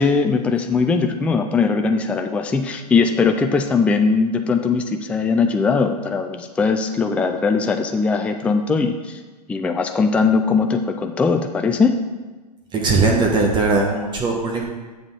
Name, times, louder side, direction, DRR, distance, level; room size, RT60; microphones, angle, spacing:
voice 1, 0.0-9.2 9.5-12.0, left 4 dB, 5° left, 5 dB, 0.4 m, -20 dB
voice 2, 12.7-14.6, right 3 dB, 20° right, 0 dB, 1.1 m, -19 dB
7.8 x 7.1 x 3.4 m, 1.3 s
hypercardioid pair, 110°, 21 cm